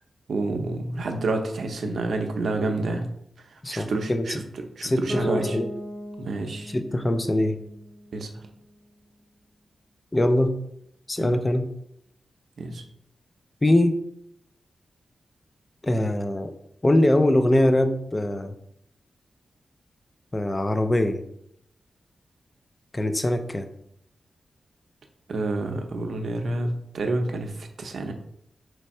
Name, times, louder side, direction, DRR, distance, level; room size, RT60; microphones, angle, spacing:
voice 1, 0.3-3.1 3.5-5.6 6.2-6.8 8.1-8.4 11.2-11.3 12.6-12.8 25.3-28.1, right 2 dB, 65° right, 4 dB, 0.6 m, -29 dB
voice 2, 3.6-4.4 4.8-5.7 6.7-7.6 10.1-10.6 11.1-11.7 13.6-14.0 15.8-16.5 16.8-18.6 20.3-21.2 22.9-23.7, left 1 dB, 20° left, 7 dB, 0.3 m, -22 dB
Bass guitar, 5.1-9.0, equal, 5° right, 1.2 m, -38 dB
3.5 x 3.2 x 4.1 m, 0.74 s
wide cardioid pair, 145°, 0 cm